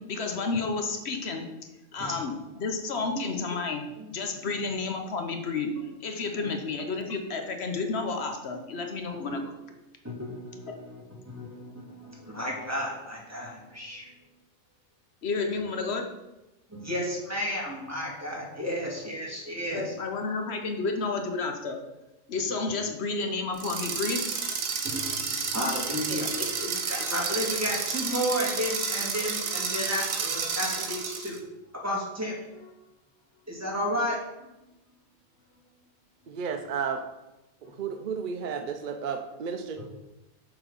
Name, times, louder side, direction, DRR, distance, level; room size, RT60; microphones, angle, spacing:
voice 1, 0.1-1.5 1.9-5.7 6.0-9.5 15.2-16.1 18.6-18.8 19.7-21.8 22.3-24.3 26.1-26.8 27.1-27.2, left 4 dB, 55° left, 4 dB, 1.0 m, -31 dB
voice 2, 10.0-14.1 16.7-19.9 22.7-22.8 24.9-26.3 26.9-31.4 31.8-32.7 33.5-34.5 37.6-37.7 39.8-39.9, equal, 10° right, -3 dB, 1.8 m, -33 dB
sound 1, 23.5-31.4, right 5 dB, 90° right, 1.4 m, -31 dB
voice 3, 36.3-37.0 37.7-39.9, right 6 dB, 55° right, 6 dB, 0.5 m, -32 dB
6.9 x 4.0 x 5.4 m, 0.97 s
omnidirectional pair, 1.4 m